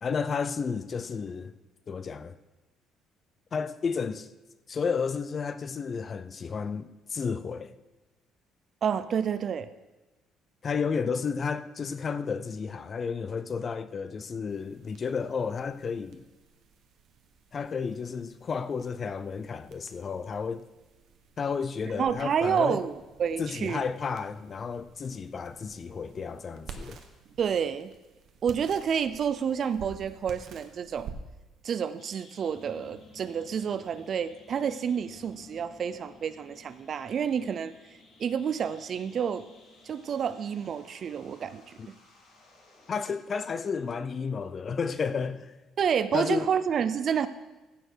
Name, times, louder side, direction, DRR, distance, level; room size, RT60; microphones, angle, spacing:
voice 1, 0.0-1.5 1.9-2.4 3.5-4.3 4.7-7.7 10.6-16.2 17.5-20.7 21.4-22.8 23.4-27.0 41.8-41.9 42.9-45.5 46.1-46.5, left 5 dB, 30° left, 0.4 m, -32 dB
voice 2, 8.8-9.7 22.0-23.8 27.4-27.9 28.4-31.1 31.6-37.7 38.2-39.5 39.8-41.8 45.8-47.3, right 7 dB, 40° right, 0.4 m, -29 dB
sound 1, 14.5-34.1, right 5 dB, 55° right, 1.1 m, -51 dB
sound 2, 32.0-43.2, left 2 dB, 70° left, 3.8 m, -55 dB
15.5 x 6.8 x 4.5 m
cardioid pair, 160°, 0 cm